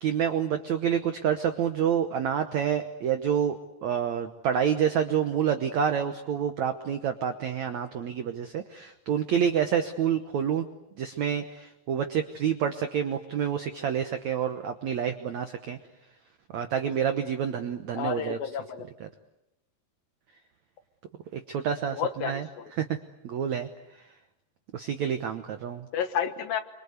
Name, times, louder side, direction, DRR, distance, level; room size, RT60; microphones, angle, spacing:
voice 1, 0.0-10.7 11.0-15.8 16.5-18.4 18.8-19.1 21.3-23.0 23.2-23.7 24.7-25.9, right 8 dB, 80° right, 8 dB, 1.6 m, -28 dB
voice 2, 18.0-18.8 22.0-22.3 25.9-26.6, left 8 dB, 65° left, 8 dB, 2.7 m, -30 dB
28.0 x 24.5 x 8.1 m, 0.89 s
omnidirectional pair, 4.9 m